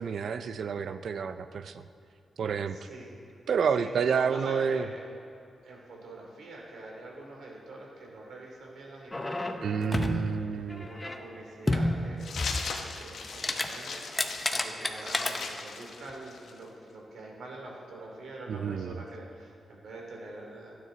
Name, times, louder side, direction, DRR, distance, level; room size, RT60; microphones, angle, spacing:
voice 1, 0.0-1.8 2.4-2.8 3.5-4.9 9.6-10.9 18.5-19.0, right 6 dB, 65° right, 11 dB, 0.6 m, -29 dB
voice 2, 2.7-3.1 3.8-5.0 5.6-10.3 10.7-12.5 12.8-20.8, right 2 dB, 85° right, -1 dB, 3.5 m, -45 dB
sound 1, 9.1-10.3 10.7-11.2 11.7-13.0 13.3-13.7 13.9-15.6 16.1-16.2, left 1 dB, 15° left, 0.8 m, -30 dB
sound 2, 12.2-16.6, left 5 dB, 70° left, 1.2 m, -39 dB
27.5 x 9.5 x 4.1 m, 2.4 s
wide cardioid pair, 155°, 0 cm